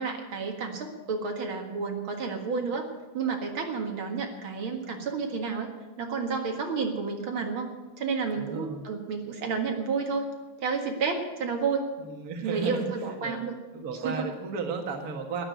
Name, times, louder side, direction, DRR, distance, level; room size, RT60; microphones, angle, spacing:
voice 1, 0.0-2.9 3.1-5.7 6.0-10.3 10.6-11.9 12.4-13.5 13.9-14.3, right 5 dB, 45° right, 2 dB, 1.8 m, -31 dB
voice 2, 8.4-8.9 12.0-12.9 13.2-13.4 13.7-15.4, right 5 dB, 75° right, 3 dB, 0.8 m, -34 dB
13.5 x 10.0 x 9.2 m, 1.2 s
omnidirectional pair, 4.3 m